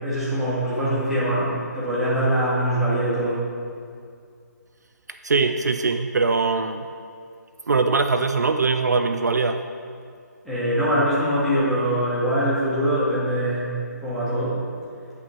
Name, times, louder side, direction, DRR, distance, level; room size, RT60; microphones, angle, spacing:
voice 1, 0.0-3.5 10.4-13.7 14.0-14.6, equal, ahead, -12 dB, 2.1 m, -23 dB
voice 2, 5.2-6.9 7.7-9.6, right 4 dB, 70° right, 7 dB, 0.4 m, -21 dB
9.7 x 5.3 x 4.2 m, 2.3 s
figure-of-eight pair, 145°, 10 cm